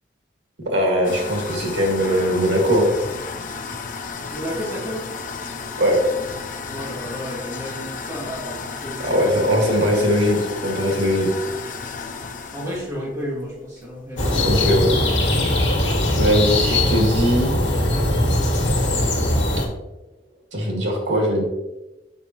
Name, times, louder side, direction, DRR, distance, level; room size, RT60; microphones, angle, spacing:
voice 1, 0.7-2.9 5.8-6.0 9.0-11.3 14.4-14.9 16.2-17.6 20.5-21.4, equal, 80° right, -1 dB, 1.9 m, -20 dB
sound 1, 1.0-15.0, left 4 dB, 45° left, 0.5 m, -34 dB
voice 2, 4.3-5.1 6.7-10.0 12.5-14.5, equal, 15° right, -4 dB, 1.7 m, -32 dB
sound 2, 14.2-19.7, left 1 dB, 80° left, 1.4 m, -20 dB
6.8 x 5.4 x 2.9 m, 1.0 s
head